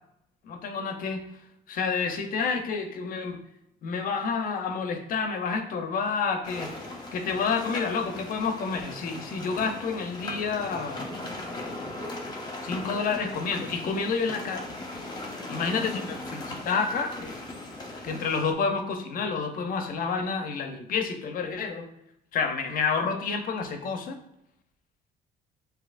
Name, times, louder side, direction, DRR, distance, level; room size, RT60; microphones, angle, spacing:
voice 1, 0.4-1.3 1.7-3.4 3.8-6.7 7.1-11.0 12.6-14.7 15.5-17.3 18.0-21.9 22.3-24.2, left 5 dB, 55° left, 6 dB, 0.7 m, -29 dB
sound 1, 6.4-18.5, left 2 dB, 25° left, 1.1 m, -38 dB
7.2 x 2.9 x 2.5 m, 0.81 s
cardioid pair, 110°, 17 cm